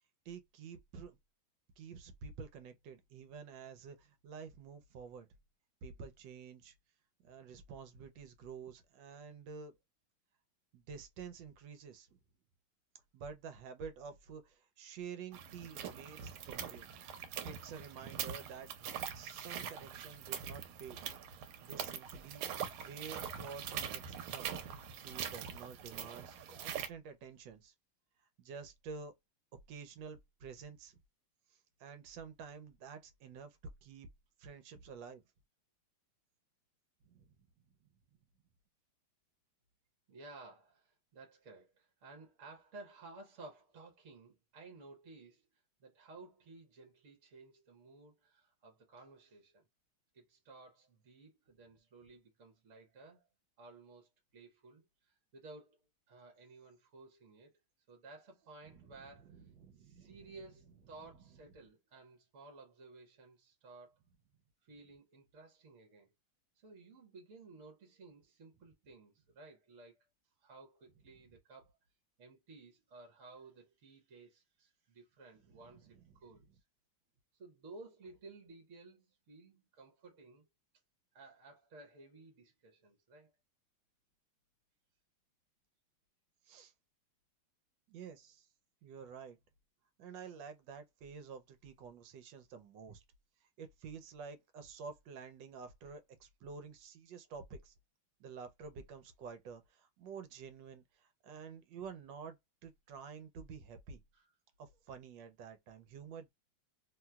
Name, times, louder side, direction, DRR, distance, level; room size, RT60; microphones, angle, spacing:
voice 1, 0.3-1.2 1.8-5.3 5.8-6.7 7.2-9.7 10.7-12.2 13.1-17.0 17.4-21.0 21.6-22.4 22.8-24.7 25.0-27.7 28.4-29.1 29.7-31.0 31.5-34.1 34.4-35.2 37.0-37.3 58.7-60.4 75.5-76.1 86.4-86.7 87.9-88.5 88.8-89.4 90.0-93.0 93.6-97.7 98.2-102.4 102.6-104.0 104.6-106.3, right 6 dB, 70° right, 1.2 m, -50 dB
sound 1, 15.3-26.9, right 8 dB, 90° right, 1.5 m, -43 dB
voice 2, 40.1-45.5 45.8-49.7 50.1-53.3 53.6-55.8 56.1-57.6 57.9-59.4 59.8-64.0 64.6-66.1 66.6-70.0 70.4-71.8 72.2-76.6 77.4-80.5 81.1-83.3 104.1-104.3, right 3 dB, 50° right, 0.9 m, -56 dB
3.0 x 3.0 x 2.2 m
omnidirectional pair, 2.3 m